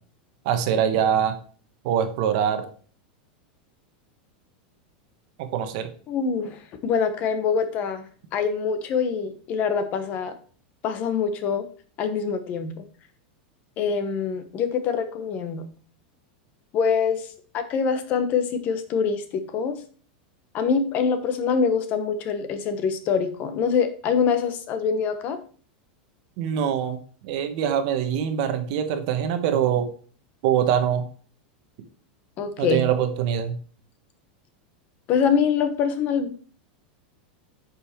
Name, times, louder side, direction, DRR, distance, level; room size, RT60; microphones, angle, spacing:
voice 1, 0.4-1.4 1.8-2.7 5.4-5.9 26.4-27.0 27.2-29.9 30.4-31.1 32.6-33.6, right 9 dB, 50° right, 8 dB, 1.2 m, -23 dB
voice 2, 6.1-8.0 8.3-10.3 10.8-11.7 12.0-12.8 13.8-15.7 16.7-17.3 17.5-19.8 20.5-25.4 32.4-32.8 35.1-36.5, left 6 dB, 30° left, 9 dB, 1.2 m, -24 dB
9.4 x 5.4 x 4.5 m, 0.43 s
supercardioid pair, 165°, 5 cm